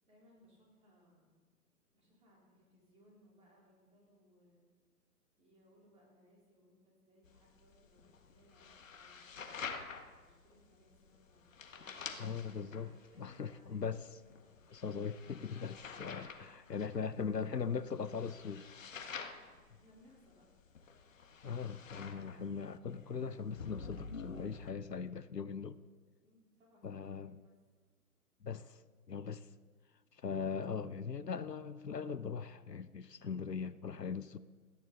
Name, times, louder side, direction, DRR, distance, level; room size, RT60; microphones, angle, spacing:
voice 1, 0.0-1.4 1.9-4.7 5.4-13.8 14.2-14.8 16.3-16.5 19.0-20.5 26.2-27.3, equal, 15° right, -3 dB, 4.1 m, -67 dB
sound 1, 7.2-24.7, left 5 dB, 55° left, 1.6 m, -49 dB
voice 2, 12.2-12.9 13.2-14.1 14.7-18.6 21.4-25.8 26.8-27.4 28.4-28.8 29.1-29.5 30.1-34.4, left 6 dB, 85° left, 14 dB, 0.8 m, -40 dB
28.5 x 10.5 x 4.0 m, 1.5 s
figure-of-eight pair, 125°, 47 cm